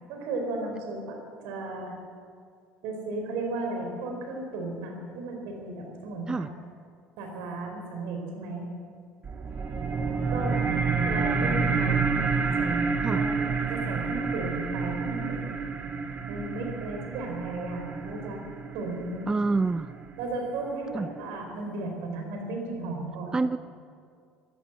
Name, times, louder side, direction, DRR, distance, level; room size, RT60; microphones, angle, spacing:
voice 1, 0.1-2.0 2.8-6.5 7.2-8.7 10.3-10.6 11.0-15.5 16.3-18.4 18.7-19.2 20.2-23.4, right 2 dB, 75° right, 2 dB, 4.3 m, -35 dB
sound 1, 9.2-20.2, right 4 dB, 35° right, 1.6 m, -29 dB
voice 2, 19.3-19.9 20.9-21.1 23.3-23.6, right 3 dB, 20° right, 14 dB, 0.4 m, -26 dB
14.5 x 12.0 x 8.1 m, 2.2 s
supercardioid pair, 90°, 4 cm